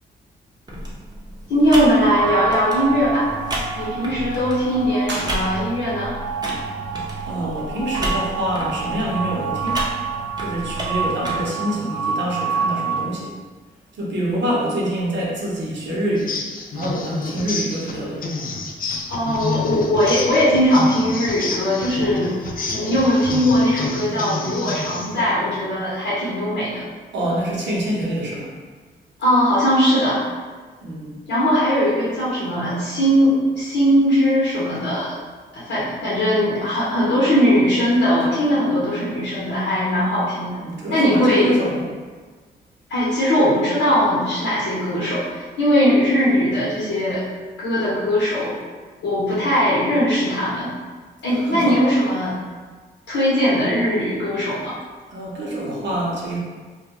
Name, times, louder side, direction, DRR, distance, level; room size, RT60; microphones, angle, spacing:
sound 1, 0.7-11.4, right 1 dB, 20° right, 0.7 m, -32 dB
voice 1, 1.5-3.3 3.8-6.2 19.1-22.3 22.7-26.8 29.2-30.3 31.3-35.1 35.5-40.6 40.9-41.5 42.9-47.2 47.6-48.6 49.0-50.7 51.2-52.3 53.1-54.8, equal, 75° left, -9 dB, 0.8 m, -19 dB
sound 2, 2.0-13.0, right 5 dB, 20° left, 0.7 m, -28 dB
voice 2, 7.3-9.8 10.4-13.3 14.0-16.4 16.7-18.3 27.1-28.5 30.8-31.2 40.6-41.9 51.3-51.9 55.1-56.4, right 1 dB, 65° right, -4 dB, 0.8 m, -26 dB
sound 3, 16.2-25.2, left 3 dB, 45° left, 0.4 m, -29 dB
2.3 x 2.2 x 2.8 m, 1.4 s
supercardioid pair, 55°, 20 cm